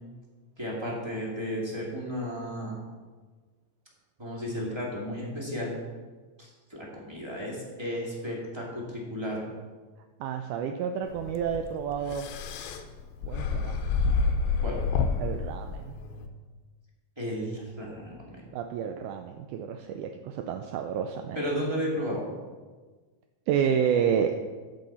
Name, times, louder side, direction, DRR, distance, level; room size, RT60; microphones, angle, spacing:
voice 1, 0.6-2.7 4.2-5.7 6.4-9.4 14.6-14.8 17.2-18.5 21.3-22.2, equal, 15° right, -4 dB, 1.0 m, -33 dB
voice 2, 10.2-12.3 13.2-13.8 15.2-16.0 18.5-21.4 23.5-24.6, right 8 dB, 85° right, 5 dB, 1.8 m, -30 dB
sound 1, 11.1-16.3, left 4 dB, 85° left, 2.5 m, -29 dB
14.0 x 6.4 x 4.3 m, 1.4 s
omnidirectional pair, 4.1 m